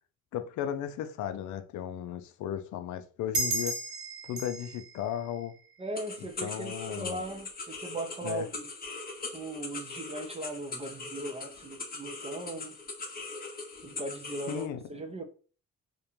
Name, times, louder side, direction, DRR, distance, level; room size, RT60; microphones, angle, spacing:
voice 1, 0.3-3.8 4.2-5.6 6.2-7.2 8.2-8.5 14.5-15.0, left 10 dB, 75° left, 0.5 m, -35 dB
sound 1, 3.3-6.4, right 2 dB, 50° right, 0.8 m, -35 dB
voice 2, 5.8-8.6 9.3-12.8 13.8-15.2, right 1 dB, 20° right, 0.4 m, -38 dB
sound 2, 5.9-14.7, left 3 dB, 30° left, 0.7 m, -41 dB
2.5 x 2.1 x 2.9 m
cardioid pair, 90°, 30 cm